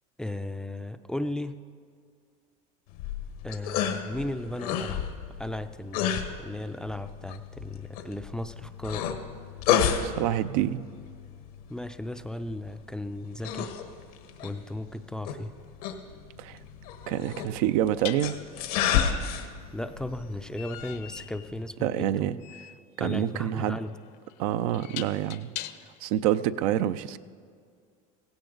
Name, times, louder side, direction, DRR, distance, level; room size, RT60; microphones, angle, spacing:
voice 1, 0.2-1.5 3.4-5.1 5.4-9.1 11.7-13.7 14.4-15.6 19.7-22.1 22.4-22.5 23.0-24.0, left 1 dB, 5° left, 9 dB, 0.4 m, -35 dB
sound 1, 2.9-21.6, left 8 dB, 85° left, 1.4 m, -32 dB
voice 2, 10.0-10.9 16.4-16.6 17.1-18.4 21.8-22.4 23.0-23.8 24.4-25.5 26.0-27.2, right 12 dB, 75° right, 13 dB, 0.5 m, -27 dB
metal gate - rattle handle swing clang, 15.6-15.7 18.0-26.1, left 13 dB, 65° left, 0.8 m, -43 dB
16.5 x 16.0 x 3.9 m, 2.2 s
supercardioid pair, 130°, 18 cm